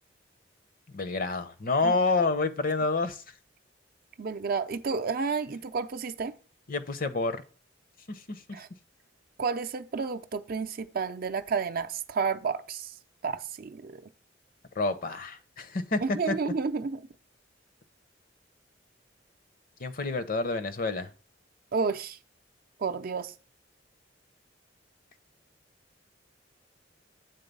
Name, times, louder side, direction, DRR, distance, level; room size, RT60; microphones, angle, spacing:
voice 1, 0.9-3.2 6.7-7.4 8.1-8.4 14.8-16.0 16.3-16.4 19.8-21.1, left 3 dB, 50° left, 0.7 m, -28 dB
voice 2, 4.2-6.3 8.5-8.7 9.4-12.9 13.2-14.0 16.0-17.0 21.7-22.2 22.8-23.3, right 5 dB, 50° right, 0.5 m, -31 dB
8.1 x 3.8 x 5.3 m
head